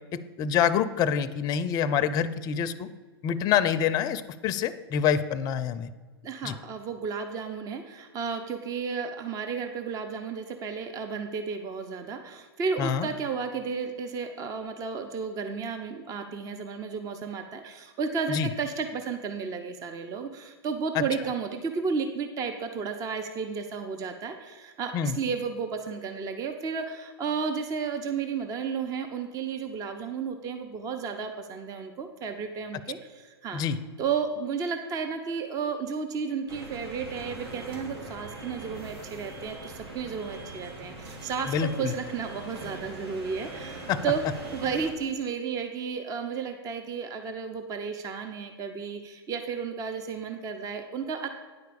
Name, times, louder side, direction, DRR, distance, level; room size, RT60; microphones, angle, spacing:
voice 1, 0.1-2.9 3.2-5.9 6.4-6.5 12.8-13.1 18.3-18.5 20.9-21.0 24.9-25.2 33.5-33.8 41.5-41.9 43.9-44.0, left 8 dB, 30° left, 13 dB, 0.5 m, -26 dB
voice 2, 6.2-33.6 34.0-44.2 44.5-51.3, right 5 dB, 25° right, 7 dB, 0.7 m, -33 dB
sound 1, 36.5-44.9, right 2 dB, 75° right, 2.4 m, -41 dB
9.6 x 4.6 x 6.9 m, 1.5 s
hypercardioid pair, 125°, 13 cm